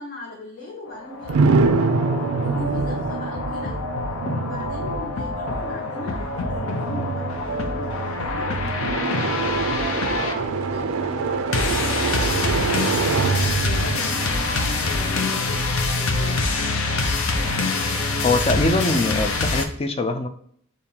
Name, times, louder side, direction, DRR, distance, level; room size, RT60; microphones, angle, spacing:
voice 1, 0.0-1.8 2.4-3.8 4.4-9.5 9.9-13.1 13.5-16.4, left 2 dB, 45° left, -4 dB, 1.0 m, -37 dB
sound 1, 0.9-19.7, left 3 dB, 75° left, 0.7 m, -25 dB
sound 2, 1.3-15.1, right 4 dB, 70° right, 0.3 m, -25 dB
sound 3, 9.7-15.1, right 2 dB, 35° right, 0.7 m, -41 dB
voice 2, 18.2-20.3, left 2 dB, 30° left, 8 dB, 0.4 m, -22 dB
6.8 x 2.6 x 2.8 m, 0.63 s
head